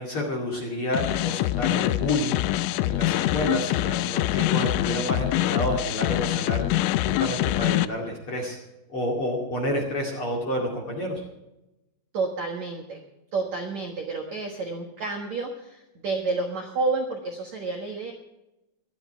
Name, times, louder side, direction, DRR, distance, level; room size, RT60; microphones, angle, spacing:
voice 1, 0.0-2.4 2.8-6.6 7.0-8.6 8.9-11.2, left 1 dB, 40° left, 0 dB, 2.1 m, -29 dB
sound 1, 0.9-7.9, left 15 dB, 85° left, 3.1 m, -25 dB
voice 2, 12.1-13.0 13.3-18.1, right 3 dB, 85° right, 2 dB, 1.5 m, -30 dB
17.5 x 12.0 x 4.6 m, 0.93 s
omnidirectional pair, 5.8 m